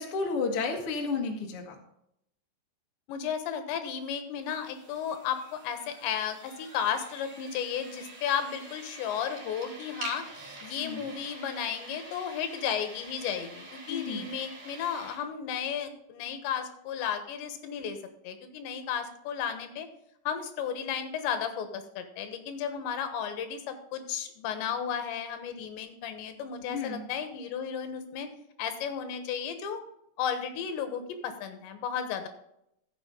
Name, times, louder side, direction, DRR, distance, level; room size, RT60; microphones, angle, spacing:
voice 1, 0.0-1.7 10.8-11.1 13.9-14.3 26.7-27.0, left 4 dB, 60° left, 1 dB, 1.5 m, -32 dB
voice 2, 3.1-10.2 10.6-18.0 18.2-19.9 20.3-28.3 28.6-29.8 30.2-32.3, left 8 dB, 80° left, 8 dB, 3.3 m, -34 dB
sound 1, 4.4-15.2, right 2 dB, 40° right, 4.0 m, -46 dB
14.0 x 7.2 x 3.8 m, 0.77 s
omnidirectional pair, 5.3 m